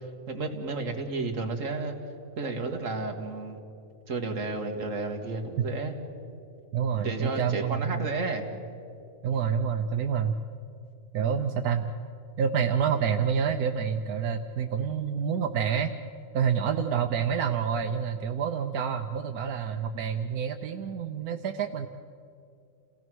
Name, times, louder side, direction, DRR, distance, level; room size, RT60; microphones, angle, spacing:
voice 1, 0.0-2.0 2.4-3.6 4.1-6.0 7.0-8.5, right 3 dB, 60° right, 3 dB, 2.1 m, -32 dB
voice 2, 6.7-8.1 9.2-10.3 11.1-11.9 12.4-15.9 16.3-21.9, right 7 dB, 85° right, 6 dB, 1.3 m, -28 dB
29.0 x 17.5 x 6.2 m, 2.5 s
omnidirectional pair, 1.5 m